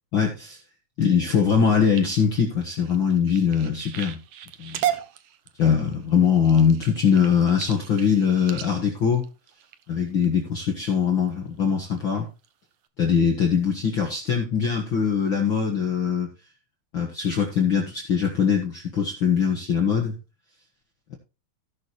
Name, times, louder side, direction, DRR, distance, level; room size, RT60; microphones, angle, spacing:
voice 1, 0.1-0.6 1.0-4.2 4.6-4.8 5.6-9.2 9.9-12.2 13.0-16.3 16.9-20.1 21.1-21.2, left 7 dB, 45° left, 0 dB, 1.8 m, -22 dB
sound 1, 1.6-10.3 10.8-11.2 11.6-12.0 12.4-12.5 12.8-12.9, right 11 dB, 85° right, 1.3 m, -35 dB
17.0 x 6.4 x 3.2 m, 0.29 s
omnidirectional pair, 4.0 m